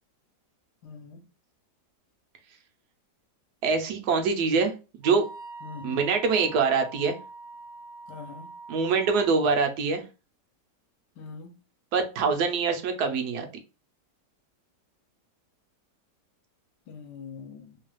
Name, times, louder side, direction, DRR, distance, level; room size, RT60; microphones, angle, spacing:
voice 1, 0.8-1.2 5.6-6.0 8.1-8.5 11.2-11.6 16.9-17.8, left 5 dB, 75° left, 1.2 m, -43 dB
voice 2, 3.6-5.2 5.8-7.2 8.7-10.0 11.9-13.5, right 5 dB, 75° right, 1.1 m, -24 dB
Wind instrument woodwind instrument, 5.0-9.4, right 3 dB, 55° right, 0.8 m, -44 dB
3.1 x 2.3 x 3.0 m
omnidirectional pair, 1.8 m